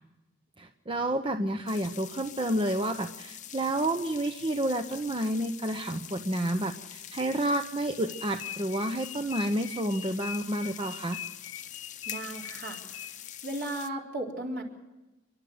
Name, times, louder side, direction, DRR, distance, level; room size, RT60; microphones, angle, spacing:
voice 1, 0.6-11.2, right 1 dB, 25° right, 6 dB, 0.8 m, -30 dB
sound 1, 1.7-13.9, left 10 dB, 40° left, 0.8 m, -45 dB
sound 2, 8.1-13.4, left 10 dB, 85° left, 0.7 m, -42 dB
voice 2, 12.1-13.1 13.4-14.6, right 1 dB, 55° right, 0 dB, 4.1 m, -36 dB
29.5 x 12.0 x 7.9 m, 1.1 s
head